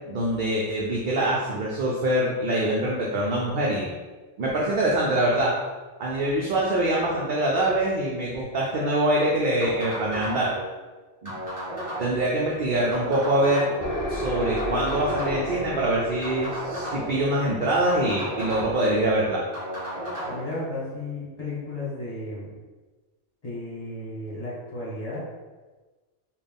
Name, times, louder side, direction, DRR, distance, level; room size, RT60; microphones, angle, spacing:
voice 1, 0.1-3.9 4.4-5.5 6.0-10.5 11.2-11.3 12.0-13.7 14.1-19.4, right 1 dB, 55° right, -4 dB, 0.6 m, -24 dB
sound 1, 9.6-10.6 11.2-12.3 12.9-13.9 14.6-15.6 16.2-17.3 17.9-18.9 19.5-20.4, equal, 30° right, 1.6 m, -33 dB
sound 2, 13.8-19.4, equal, 55° left, 0.7 m, -34 dB
voice 2, 20.3-22.5 23.4-25.2, left 2 dB, 35° left, -8 dB, 1.3 m, -34 dB
4.0 x 2.3 x 3.5 m, 1.3 s
omnidirectional pair, 1.2 m